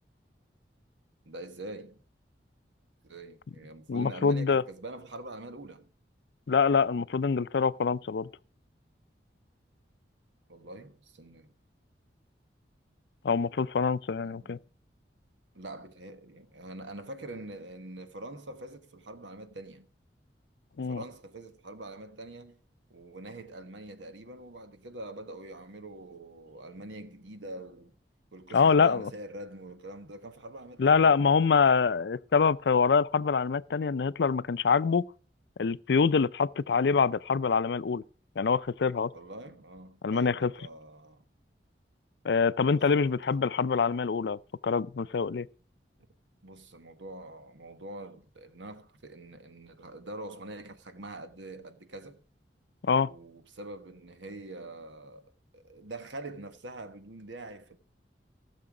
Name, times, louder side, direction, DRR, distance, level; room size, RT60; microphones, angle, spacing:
voice 1, 1.2-2.0 3.0-5.9 10.5-11.5 14.2-14.6 15.5-19.9 20.8-22.6 22.9-27.9 28.3-31.2 39.1-41.2 42.6-43.2 46.4-52.2 53.0-57.8, right 2 dB, 90° right, 1.3 m, -44 dB
voice 2, 3.9-4.6 6.5-8.3 13.2-14.6 20.8-21.0 28.5-29.1 30.8-35.1 35.6-38.0 38.4-39.1 40.0-40.5 42.2-44.4 44.6-45.5 52.8-53.1, left 5 dB, 70° left, 0.4 m, -25 dB
17.5 x 6.8 x 4.9 m
head